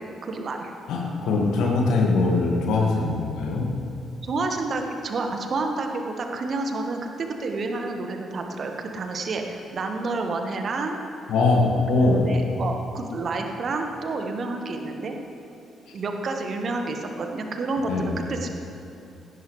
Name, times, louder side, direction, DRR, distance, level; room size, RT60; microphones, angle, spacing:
voice 1, 0.2-0.7 4.2-11.0 12.0-15.1 15.9-18.5, right 3 dB, 45° right, 4 dB, 1.6 m, -29 dB
voice 2, 0.9-3.7 11.3-12.2 17.9-18.1, left 3 dB, 60° left, -1 dB, 2.1 m, -22 dB
18.5 x 17.0 x 3.4 m, 2.6 s
figure-of-eight pair, 40°, 0 cm